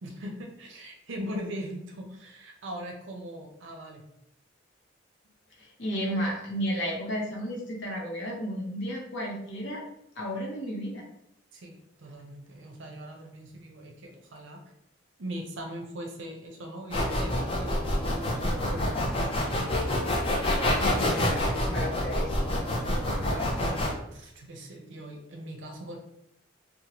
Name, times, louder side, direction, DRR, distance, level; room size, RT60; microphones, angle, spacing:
voice 1, 0.0-4.0 11.5-14.6 15.2-19.8 23.2-26.0, equal, 70° right, 2 dB, 0.6 m, -40 dB
voice 2, 5.6-9.8 10.2-11.0 21.0-22.6, equal, 65° left, -2 dB, 0.8 m, -33 dB
sound 1, 16.9-23.9, left 1 dB, 30° left, 0.4 m, -27 dB
2.9 x 2.1 x 2.9 m, 0.79 s
head